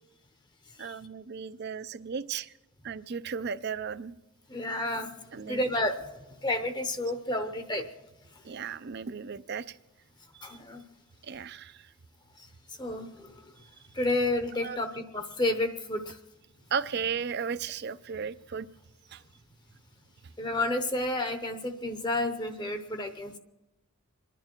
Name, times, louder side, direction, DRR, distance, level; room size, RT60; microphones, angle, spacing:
voice 1, 0.8-2.5 2.8-4.2 5.3-5.6 8.4-9.8 10.3-10.6 11.2-11.9 14.6-14.8 16.7-18.7 19.1-19.2, right 6 dB, 50° right, 15 dB, 0.5 m, -35 dB
voice 2, 4.5-5.1 5.4-6.1 6.4-7.9 10.4-10.8 12.8-13.3 13.9-16.2 20.4-23.4, left 1 dB, 20° left, 8 dB, 0.7 m, -30 dB
27.0 x 11.0 x 4.5 m, 1.0 s
head